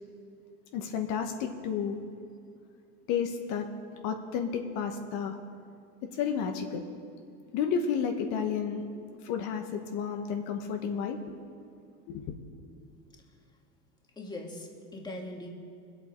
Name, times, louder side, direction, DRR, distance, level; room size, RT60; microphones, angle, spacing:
voice 1, 0.7-2.0 3.1-3.7 4.0-5.4 6.1-6.8 7.5-8.8 9.2-11.4 12.1-12.4, left 7 dB, 55° left, 4 dB, 1.2 m, -31 dB
voice 2, 14.2-15.5, left 1 dB, 10° left, 1 dB, 1.6 m, -40 dB
21.0 x 7.8 x 4.4 m, 2.4 s
supercardioid pair, 125°, 36 cm